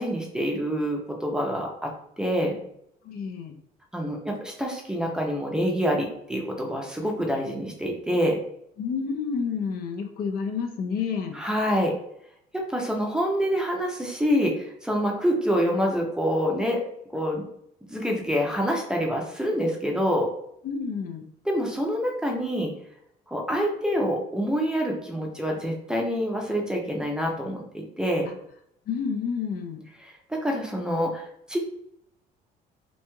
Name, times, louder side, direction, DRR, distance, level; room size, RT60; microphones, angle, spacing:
voice 1, 0.0-2.6 3.9-8.4 11.3-11.9 12.5-16.8 17.1-17.4 17.9-20.3 21.5-22.7 23.3-28.3 30.3-31.6, equal, 5° right, 0 dB, 0.5 m, -26 dB
voice 2, 3.0-3.6 8.8-11.4 20.6-21.3 28.3-28.4 28.9-29.8, left 6 dB, 60° left, 5 dB, 0.4 m, -30 dB
3.0 x 2.6 x 2.2 m, 0.73 s
cardioid pair, 110°, 17 cm